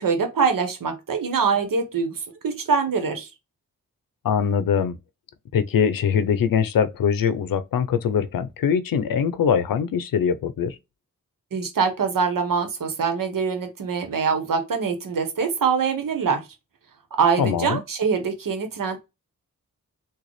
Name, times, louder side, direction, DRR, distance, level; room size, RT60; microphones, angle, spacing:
voice 1, 0.0-3.3 11.5-16.4 17.2-19.0, right 5 dB, 75° right, 1.1 m, -24 dB
voice 2, 4.2-5.0 5.5-10.8 17.4-17.8, left 7 dB, 85° left, 0.6 m, -22 dB
3.9 x 2.3 x 3.1 m
cardioid pair, 50°, 33 cm